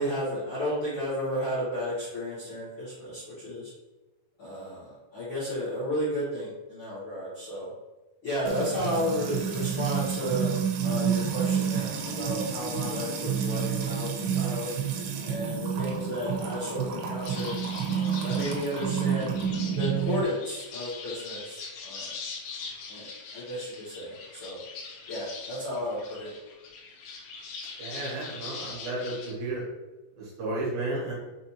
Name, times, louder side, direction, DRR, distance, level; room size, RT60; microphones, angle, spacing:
voice 1, 0.0-3.7 4.4-7.7 8.2-10.5 10.8-14.7 15.2-17.6 17.9-19.3 19.8-22.1 22.9-24.6 25.1-26.3, equal, 55° left, -12 dB, 1.4 m, -33 dB
Music / Water tap faucet / Trickle dribble, 8.5-20.2, right 7 dB, 90° right, 2.8 m, -29 dB
sound 1, 17.2-29.3, left 5 dB, 75° left, 2.6 m, -42 dB
voice 2, 27.8-29.7 30.2-31.1, right 2 dB, 70° right, -4 dB, 2.8 m, -33 dB
6.4 x 2.6 x 2.8 m, 1.1 s
omnidirectional pair, 4.6 m